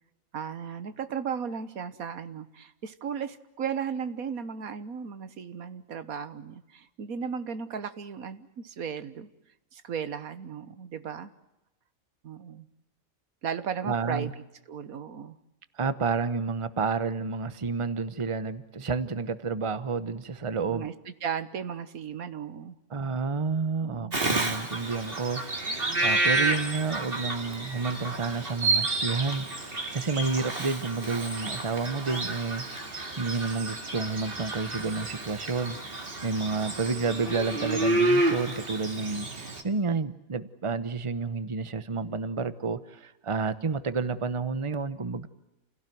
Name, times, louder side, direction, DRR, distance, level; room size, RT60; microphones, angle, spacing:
voice 1, 0.3-9.3 9.7-11.3 12.2-12.7 13.4-14.3 14.7-15.4 20.7-22.8 23.8-24.2, right 7 dB, 90° right, 12 dB, 1.6 m, -35 dB
voice 2, 13.8-14.3 15.8-20.9 22.9-35.8 36.2-39.3 39.6-45.3, right 4 dB, 25° right, 13 dB, 1.0 m, -30 dB
Bird vocalization bird call bird song, 24.1-39.6, right 2 dB, 40° right, 2.5 m, -30 dB
29.0 x 17.0 x 9.3 m, 0.95 s
omnidirectional pair, 1.5 m